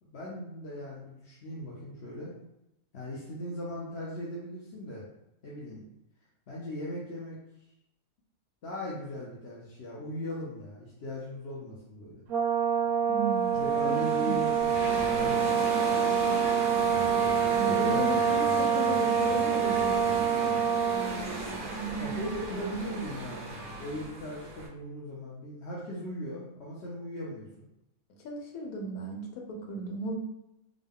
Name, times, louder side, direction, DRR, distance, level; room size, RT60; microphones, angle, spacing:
voice 1, 0.0-2.3 2.9-5.0 5.4-5.8 6.5-7.4 8.6-12.2 13.5-14.8 15.1-15.5 17.6-18.6 22.0-27.7, left 1 dB, 55° left, -6 dB, 0.9 m, -38 dB
Brass instrument, 12.3-21.2, right 7 dB, 85° right, 1.1 m, -26 dB
voice 2, 13.1-14.4 17.5-20.6 20.9-21.4 21.7-22.3 22.6-23.1 28.2-30.2, right 1 dB, 90° left, 1 dB, 1.2 m, -36 dB
sound 1, 13.3-24.7, right 2 dB, 50° right, 0.6 m, -37 dB
3.8 x 2.2 x 3.5 m, 0.87 s
omnidirectional pair, 1.5 m